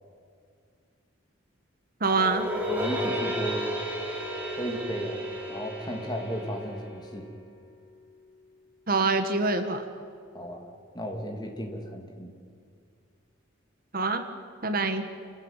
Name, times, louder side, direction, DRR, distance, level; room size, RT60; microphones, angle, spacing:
voice 1, 2.0-2.5 8.9-9.8 13.9-14.2 14.6-15.1, right 3 dB, 45° right, 8 dB, 1.6 m, -25 dB
sound 1, 2.2-7.4, equal, 5° right, 3.6 m, -33 dB
voice 2, 2.7-3.7 4.6-5.2 5.5-7.3 10.3-10.7 10.9-12.3, equal, 20° left, 2 dB, 3.1 m, -34 dB
29.0 x 16.5 x 9.2 m, 2.3 s
head